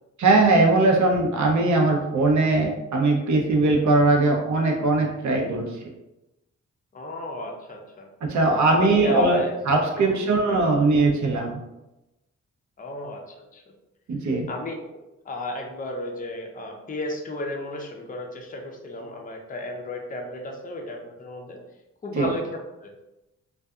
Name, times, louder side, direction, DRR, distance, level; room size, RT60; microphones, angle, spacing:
voice 1, 0.2-5.7 8.2-11.6 14.1-14.5 22.2-22.3, right 2 dB, 60° right, 1 dB, 0.6 m, -20 dB
voice 2, 6.9-8.1 8.6-9.6 9.9-10.9 12.8-13.6 14.5-21.6 22.0-22.9, left 1 dB, 25° left, 2 dB, 0.5 m, -34 dB
2.6 x 2.3 x 2.3 m, 0.95 s
cardioid pair, 65°, 32 cm